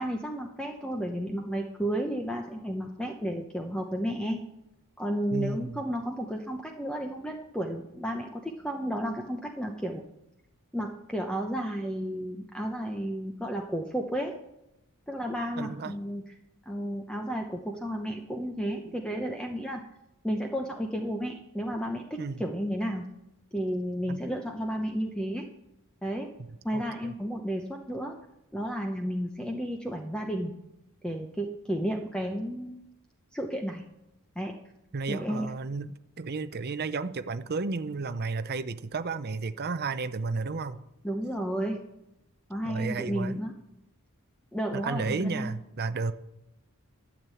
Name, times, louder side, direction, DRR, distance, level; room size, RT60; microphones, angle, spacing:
voice 1, 0.0-4.4 5.0-10.0 10.7-14.3 15.1-16.2 16.7-19.8 20.2-23.0 23.5-25.5 26.0-26.3 26.6-28.1 28.5-30.5 31.0-32.8 33.3-33.8 34.4-34.5 35.1-35.5 41.0-41.8 42.5-43.5 44.5-45.5, equal, 5° left, 2 dB, 0.9 m, -32 dB
voice 2, 5.3-5.8 15.6-15.9 22.2-22.5 24.1-24.2 26.7-27.1 34.9-40.8 42.6-43.4 44.7-46.1, right 4 dB, 45° right, 11 dB, 0.6 m, -33 dB
12.5 x 7.4 x 8.3 m, 0.90 s
head